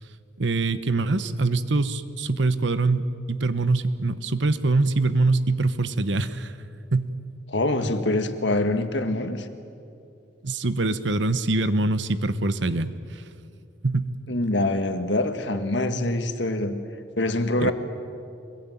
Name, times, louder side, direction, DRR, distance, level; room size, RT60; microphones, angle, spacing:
voice 1, 0.4-6.5 6.9-7.1 10.4-12.9 13.8-14.1 17.6-17.7, right 2 dB, 75° right, 13 dB, 1.1 m, -24 dB
voice 2, 7.5-9.5 14.3-16.8 17.2-17.7, left 2 dB, 70° left, 7 dB, 1.9 m, -24 dB
25.0 x 21.5 x 9.3 m, 2.5 s
head